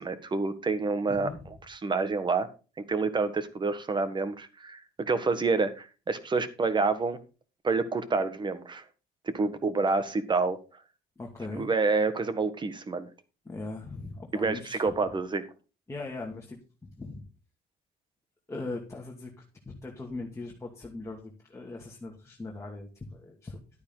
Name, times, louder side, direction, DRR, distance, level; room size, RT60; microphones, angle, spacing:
voice 1, 0.0-1.3 1.7-2.5 2.8-7.2 7.6-8.8 9.3-10.6 11.5-13.1 14.3-15.4, right 4 dB, 25° right, 12 dB, 1.6 m, -28 dB
voice 2, 1.1-1.4 11.2-11.7 13.4-14.8 15.9-17.3 18.5-19.4 19.8-22.9 23.2-23.6, left 2 dB, 15° left, -1 dB, 2.4 m, -39 dB
11.5 x 9.5 x 4.0 m, 0.34 s
cardioid pair, 110°, 17 cm